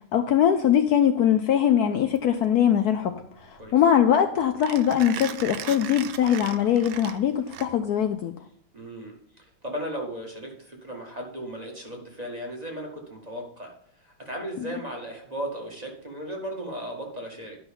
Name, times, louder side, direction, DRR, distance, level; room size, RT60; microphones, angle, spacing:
voice 1, 0.1-3.1 3.7-8.3, left 9 dB, 85° left, 8 dB, 0.8 m, -21 dB
Mechanisms, 2.0-8.1, right 10 dB, 70° right, 1.4 m, -39 dB
voice 2, 8.7-9.2 9.6-13.7 14.2-17.6, right 1 dB, 20° right, 0 dB, 1.8 m, -36 dB
11.0 x 6.0 x 5.2 m, 0.68 s
omnidirectional pair, 2.4 m